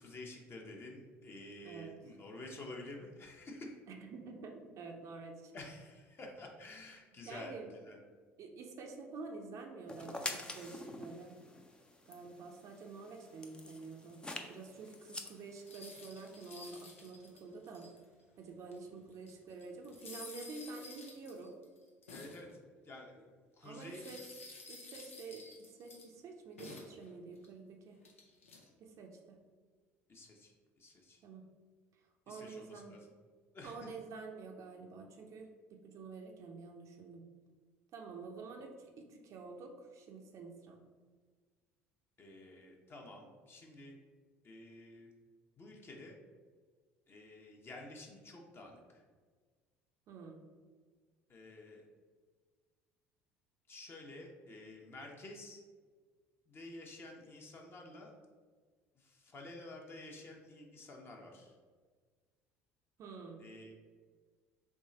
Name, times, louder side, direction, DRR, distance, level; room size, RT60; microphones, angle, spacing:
voice 1, 0.0-3.7 5.5-7.6 7.8-8.0 22.1-22.5 22.8-24.1 30.1-30.5 30.8-31.2 32.3-33.0 33.5-33.9 42.2-44.0 44.4-45.1 45.6-46.2 47.1-49.0 51.3-51.9 53.7-55.6 56.5-58.1 59.0-61.5 63.4-63.7, left 2 dB, 35° left, 0 dB, 0.9 m, -50 dB
voice 2, 3.9-5.5 7.3-7.8 8.4-11.4 12.1-14.2 14.5-17.9 18.4-21.6 23.6-28.0 28.8-29.4 31.2-31.5 32.3-33.0 33.6-37.2 37.9-40.8 50.1-50.4 63.0-63.4, right 4 dB, 50° right, 2 dB, 0.6 m, -48 dB
sound 1, 9.9-16.5, left 2 dB, 10° left, 0.5 m, -47 dB
sound 2, 15.7-18.2 18.7-18.8 19.1-22.5 23.8-26.1 26.6-27.5 28.0-28.7, left 3 dB, 80° left, 0.6 m, -52 dB
3.6 x 3.1 x 4.2 m, 1.5 s
figure-of-eight pair, 60°, 7 cm